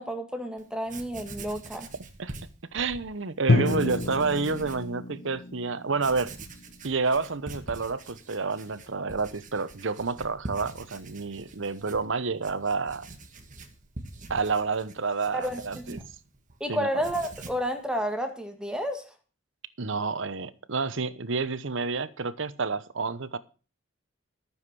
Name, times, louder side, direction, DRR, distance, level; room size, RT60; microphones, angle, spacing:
voice 1, 0.0-1.9 15.3-16.0 16.6-19.1, equal, 5° right, 1.7 m, -31 dB
Writing, 0.6-0.7 0.9-3.1 3.6-4.9 5.3-5.4 5.9-16.6 16.9-17.7, right 2 dB, 40° right, 1.7 m, -44 dB
voice 2, 2.7-6.3 6.8-13.1 14.3-16.0 16.7-17.0 19.8-23.4, right 4 dB, 65° right, 1.0 m, -29 dB
Drum, 3.5-7.3, left 2 dB, 45° left, 0.8 m, -29 dB
13.5 x 7.3 x 6.0 m
head